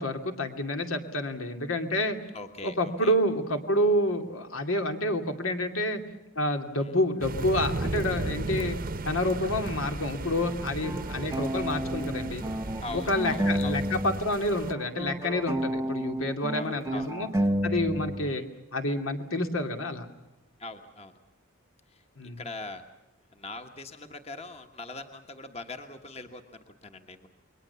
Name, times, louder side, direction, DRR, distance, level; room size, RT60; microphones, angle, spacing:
voice 1, 0.0-2.2 2.6-6.0 6.4-12.4 12.9-17.3 17.6-18.4 18.7-20.1 22.2-22.4, left 1 dB, 85° left, 6 dB, 2.6 m, -28 dB
voice 2, 2.3-3.1 6.8-6.9 12.8-13.8 16.5-17.1 18.3-18.4 20.6-21.1 21.9-22.9 23.3-27.3, left 2 dB, 30° left, 7 dB, 1.4 m, -42 dB
sound 1, 7.2-14.7, right 2 dB, 40° right, 0.8 m, -35 dB
sound 2, 10.3-14.2 14.5-18.3, equal, 15° right, 1.0 m, -31 dB
29.0 x 22.5 x 7.0 m, 1.0 s
head